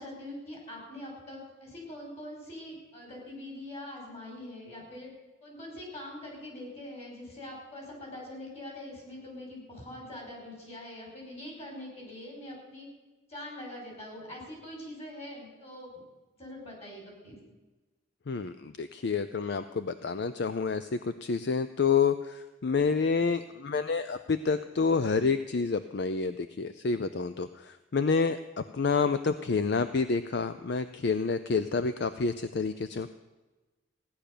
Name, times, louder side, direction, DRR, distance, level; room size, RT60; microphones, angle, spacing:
voice 1, 0.0-5.1 5.4-12.9 13.3-16.0 16.4-17.4, left 1 dB, 30° left, -1 dB, 5.1 m, -43 dB
voice 2, 18.3-33.1, left 5 dB, 55° left, 11 dB, 0.5 m, -28 dB
16.0 x 10.5 x 6.7 m, 1.2 s
head